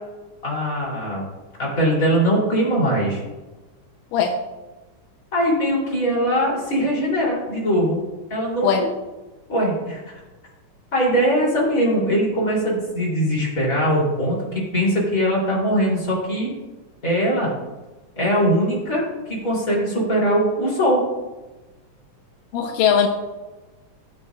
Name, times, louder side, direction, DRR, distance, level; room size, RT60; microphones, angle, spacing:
voice 1, 0.4-1.2 1.6-3.2 5.3-8.0 8.3-8.7 9.5-10.0 10.9-16.5 17.0-17.5 18.1-21.0, equal, 25° left, -4 dB, 3.3 m, -21 dB
voice 2, 22.5-23.1, left 7 dB, 85° left, 0 dB, 2.3 m, -19 dB
16.5 x 7.8 x 2.4 m, 1.2 s
omnidirectional pair, 3.8 m